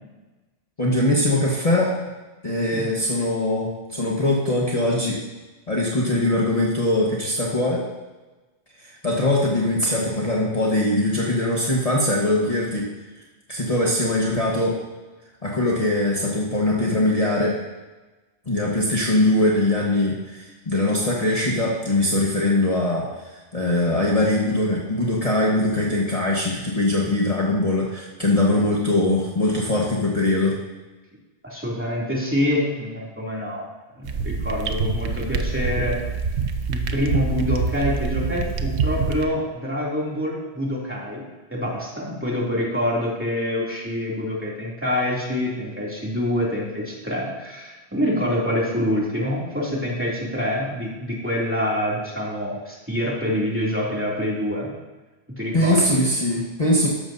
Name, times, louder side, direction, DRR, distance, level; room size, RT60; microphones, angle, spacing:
voice 1, 0.8-1.9 2.4-5.2 5.7-7.8 8.8-12.9 13.5-14.8 15.4-17.6 18.5-30.5 55.5-56.9, left 1 dB, 35° left, -4 dB, 1.3 m, -21 dB
voice 2, 31.4-33.6 33.9-36.0 36.7-41.2 41.5-54.7 55.4-56.0, left 1 dB, 10° right, -5 dB, 2.7 m, -26 dB
sound 1, 34.0-39.2, right 5 dB, 70° right, 1.0 m, -25 dB
13.0 x 11.5 x 2.7 m, 1.2 s
omnidirectional pair, 1.2 m